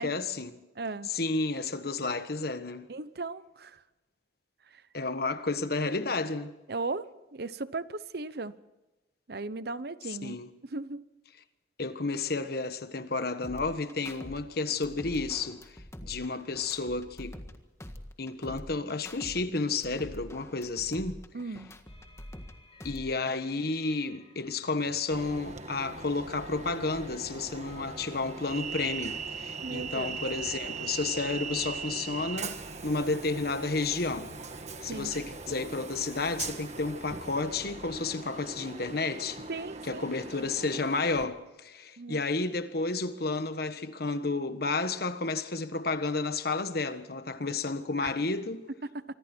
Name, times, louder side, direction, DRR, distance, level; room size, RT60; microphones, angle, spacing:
voice 1, 0.0-0.6 1.1-2.9 4.9-6.5 10.2-10.5 11.8-15.6 16.0-17.4 18.2-21.2 22.8-32.6 32.8-34.4 34.8-39.5 39.9-48.6, left 3 dB, 60° left, 1.4 m, -31 dB
voice 2, 0.8-1.1 2.9-3.8 4.7-4.8 6.7-8.6 9.3-10.4 10.7-11.0 21.3-21.7 29.6-30.2 30.4-30.5 34.9-35.2 39.5-40.1 42.0-42.2 48.0-48.1 48.8-49.0, right 3 dB, 60° right, 0.9 m, -37 dB
sound 1, 13.4-14.4 14.7-17.5 17.8-19.4 19.7-22.5 22.8-23.4, left 1 dB, 15° left, 1.7 m, -45 dB
sound 2, 21.9-38.0, left 2 dB, 35° left, 6.6 m, -58 dB
Train, 25.1-41.2, right 5 dB, 40° right, 1.5 m, -40 dB
26.0 x 24.5 x 4.5 m
head